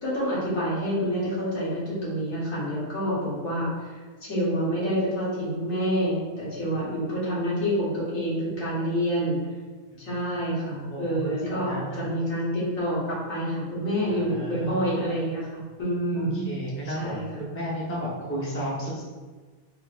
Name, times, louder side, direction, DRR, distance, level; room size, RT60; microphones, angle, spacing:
voice 1, 0.0-9.4 10.0-13.0 13.3-17.4, equal, 65° left, -8 dB, 1.9 m, -28 dB
voice 2, 10.9-12.1 14.1-14.9 16.1-19.0, equal, 15° left, -6 dB, 0.5 m, -33 dB
4.3 x 3.7 x 2.4 m, 1.4 s
omnidirectional pair, 1.5 m